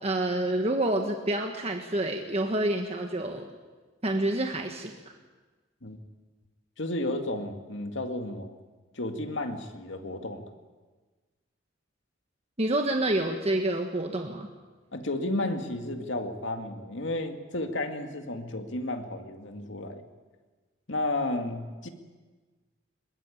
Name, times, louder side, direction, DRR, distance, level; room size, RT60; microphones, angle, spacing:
voice 1, 0.0-3.5 4.0-4.9 12.6-14.5, right 1 dB, 30° right, 3 dB, 1.5 m, -28 dB
voice 2, 6.8-8.5 8.9-10.4 14.9-20.0 20.9-21.9, left 1 dB, 70° left, 5 dB, 2.3 m, -32 dB
22.0 x 21.0 x 8.7 m, 1.3 s
head